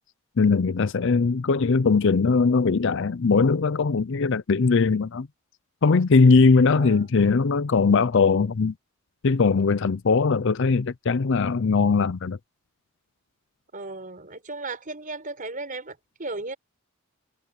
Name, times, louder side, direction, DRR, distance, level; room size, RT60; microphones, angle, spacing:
voice 1, 0.4-5.3 5.8-8.7 9.2-12.4, left 4 dB, 55° left, 0.5 m, -20 dB
voice 2, 6.7-7.1 13.7-16.6, right 2 dB, 40° right, 4.9 m, -36 dB
head